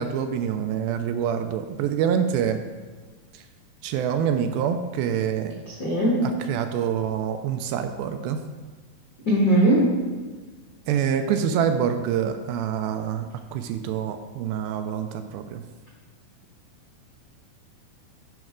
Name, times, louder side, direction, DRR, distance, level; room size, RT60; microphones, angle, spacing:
voice 1, 0.0-2.6 3.3-3.4 3.8-5.6 6.2-8.4 10.9-15.6, right 8 dB, 85° right, 7 dB, 2.3 m, -26 dB
voice 2, 5.7-6.1 9.2-9.8, right 1 dB, 40° left, -7 dB, 1.4 m, -19 dB
10.5 x 5.3 x 3.7 m, 1.4 s
omnidirectional pair, 4.3 m